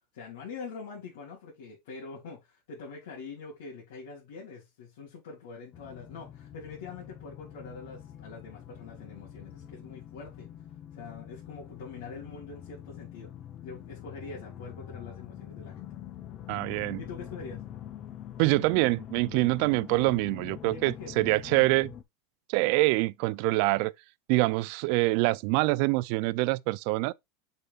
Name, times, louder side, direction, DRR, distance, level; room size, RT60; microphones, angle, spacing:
voice 1, 0.1-10.5 10.9-13.3 13.6-15.9 17.0-17.6 20.7-21.4, left 4 dB, 80° left, 3.5 m, -44 dB
sound 1, 5.7-22.0, left 10 dB, 35° left, 0.9 m, -45 dB
voice 2, 16.5-17.0 18.4-21.9 22.5-23.9 24.3-27.1, right 22 dB, 60° right, 0.4 m, -25 dB
7.1 x 6.7 x 2.5 m
supercardioid pair, 140°, 0 cm